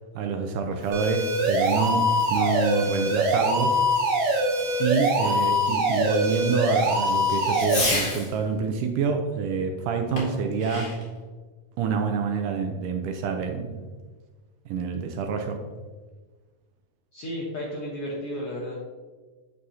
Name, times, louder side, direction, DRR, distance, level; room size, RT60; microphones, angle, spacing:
voice 1, 0.2-3.8 4.8-11.0 11.8-13.8 14.7-15.6, right 5 dB, 80° right, 4 dB, 2.0 m, -27 dB
Fireworks, 0.7-8.4 10.2-11.2, left 2 dB, 30° left, 2.0 m, -35 dB
sound 1, 0.9-7.8, equal, 60° right, 1.7 m, -23 dB
voice 2, 5.0-5.4 17.1-19.0, left 1 dB, 70° left, -4 dB, 1.4 m, -34 dB
8.6 x 6.2 x 2.7 m, 1.4 s
omnidirectional pair, 4.0 m